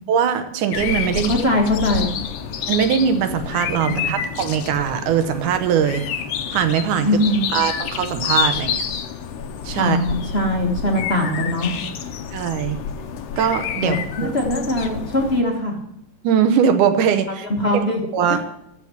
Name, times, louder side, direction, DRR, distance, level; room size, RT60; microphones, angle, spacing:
voice 1, 0.1-1.3 2.7-6.1 6.5-7.1 7.5-8.9 9.6-10.0 12.3-12.8 13.4-14.3 16.2-17.5 18.1-18.4, right 8 dB, 75° right, 8 dB, 2.4 m, -21 dB
sound 1, 0.7-15.4, left 7 dB, 65° left, 1.6 m, -28 dB
voice 2, 1.3-2.1 3.9-4.1 7.0-7.5 8.7-8.8 9.8-11.7 13.8-15.8 17.5-18.0 18.3-18.5, left 1 dB, 30° left, 0 dB, 1.1 m, -21 dB
15.0 x 5.8 x 7.9 m, 0.77 s
omnidirectional pair, 3.7 m